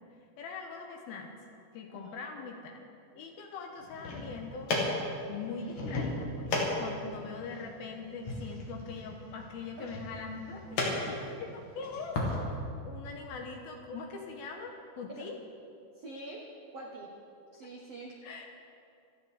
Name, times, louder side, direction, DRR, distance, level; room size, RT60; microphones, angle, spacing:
voice 1, 0.4-1.3 1.7-2.8 3.2-4.7 5.3-6.5 6.8-12.4 12.9-15.3 18.2-18.5, left 4 dB, 70° left, 2 dB, 2.6 m, -42 dB
voice 2, 1.9-2.2 9.8-9.9 15.1-15.3 15.9-16.4 16.7-17.1 17.5-18.1, right 2 dB, 80° right, -1 dB, 1.3 m, -45 dB
sound 1, 3.8-12.3, left 2 dB, 45° left, 3.1 m, -36 dB
27.0 x 10.0 x 4.9 m, 2.6 s
omnidirectional pair, 5.2 m